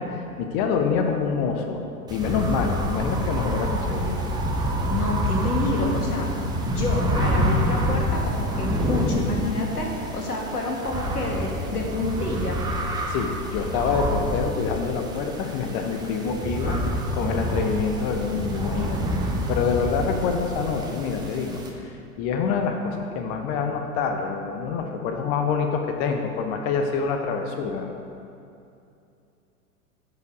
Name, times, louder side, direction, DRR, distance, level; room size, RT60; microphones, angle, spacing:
voice 1, 0.0-1.8 2.1-4.2 13.1-27.9, left 5 dB, 30° left, 4 dB, 0.6 m, -26 dB
sound 1, 2.1-21.7, equal, 10° right, 0.6 m, -27 dB
voice 2, 4.9-6.3 6.6-9.9 10.1-12.6, left 2 dB, 80° left, 0 dB, 1.5 m, -28 dB
9.3 x 4.9 x 4.8 m, 2.6 s
figure-of-eight pair, 95°, 45 cm